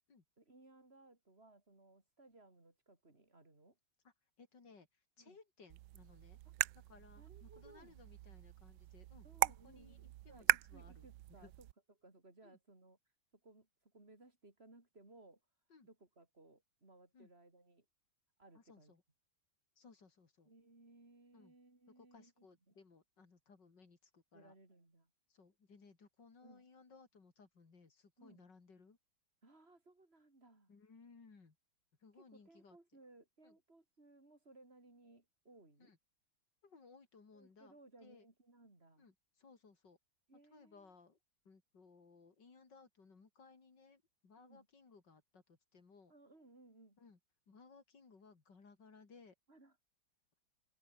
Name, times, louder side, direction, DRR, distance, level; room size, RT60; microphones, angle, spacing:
voice 1, 0.4-3.8 5.2-5.4 6.4-6.5 7.2-7.9 9.2-11.7 12.0-13.0 13.4-15.4 15.8-17.8 18.4-18.9 20.4-22.8 24.3-25.1 26.4-26.7 28.2-28.4 29.4-30.7 32.1-35.9 37.3-39.1 40.3-40.9 44.4-44.7 46.1-47.0 49.5-49.7, right 2 dB, 30° right, 4.7 m, -63 dB
voice 2, 4.0-6.4 6.9-11.5 12.4-12.6 15.7-15.9 17.1-17.3 18.5-19.0 19.8-20.5 21.3-21.5 22.0-24.6 25.3-29.0 30.7-31.6 32.0-32.8 33.4-33.5 35.8-36.0 36.6-38.3 39.0-40.0 40.5-41.2 41.5-46.1 47.0-47.2 47.5-49.4, left 4 dB, 65° left, 3.8 m, -62 dB
sound 1, 5.7-11.7, right 16 dB, 75° right, 1.2 m, -39 dB
omnidirectional pair, 2.1 m